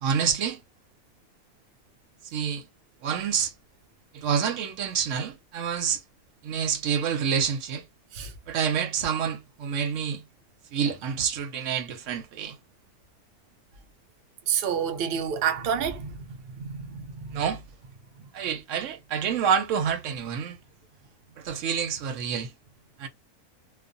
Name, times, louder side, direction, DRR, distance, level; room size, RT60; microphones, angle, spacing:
voice 1, 0.0-0.6 2.2-2.7 3.0-3.5 4.1-6.0 6.4-7.8 8.5-10.2 10.7-12.6 17.3-17.6 18.3-20.6 21.4-22.5 23.0-23.1, right 7 dB, 65° right, 0.8 m, -27 dB
voice 2, 14.5-17.4, right 8 dB, 85° right, 0.5 m, -29 dB
2.4 x 2.3 x 2.5 m
omnidirectional pair, 1.6 m